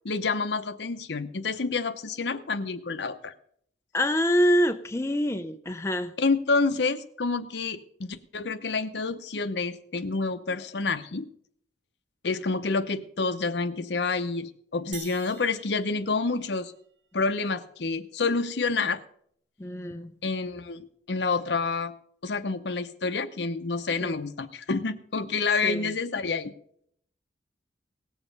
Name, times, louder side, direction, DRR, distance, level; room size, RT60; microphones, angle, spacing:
voice 1, 0.0-3.3 6.2-11.3 12.2-16.7 17.1-19.0 20.2-21.9 22.2-26.5, left 4 dB, 75° left, 11 dB, 0.7 m, -28 dB
voice 2, 3.9-6.1 19.6-20.1 24.0-24.1 25.6-25.9, equal, 15° left, 8 dB, 0.4 m, -25 dB
sound 1, 14.9-16.9, right 8 dB, 85° right, 1.1 m, -46 dB
18.0 x 7.2 x 5.3 m, 0.66 s
head